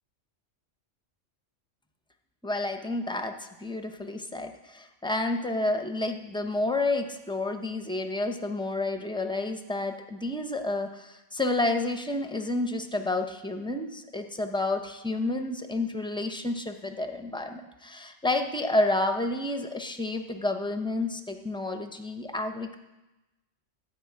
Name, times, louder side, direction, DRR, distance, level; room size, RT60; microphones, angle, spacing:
voice 1, 2.4-22.8, left 2 dB, 5° left, 6 dB, 0.4 m, -30 dB
12.0 x 5.4 x 8.5 m, 1.0 s
omnidirectional pair, 1.3 m